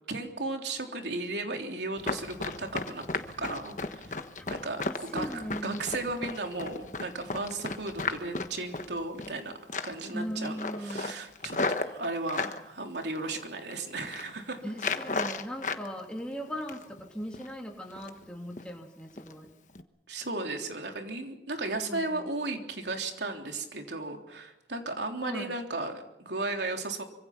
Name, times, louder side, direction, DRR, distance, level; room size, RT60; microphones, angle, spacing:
voice 1, 0.1-3.1 3.4-4.1 4.5-9.5 9.8-14.6 20.1-27.0, right 2 dB, 85° right, 3 dB, 3.5 m, -35 dB
Run, 2.0-9.4 9.7-10.1 10.4-12.6 13.1-13.7 14.0-14.3 14.7-15.9 16.2-17.0 17.3-17.5 17.9-18.2 18.6-18.7 19.2-19.3 19.7-19.8, left 3 dB, 45° left, 1.3 m, -34 dB
voice 2, 4.9-5.8 10.1-11.2 14.6-19.5 21.9-22.3 25.2-25.5, equal, 5° left, 1 dB, 2.9 m, -38 dB
25.5 x 25.0 x 6.0 m, 0.91 s
head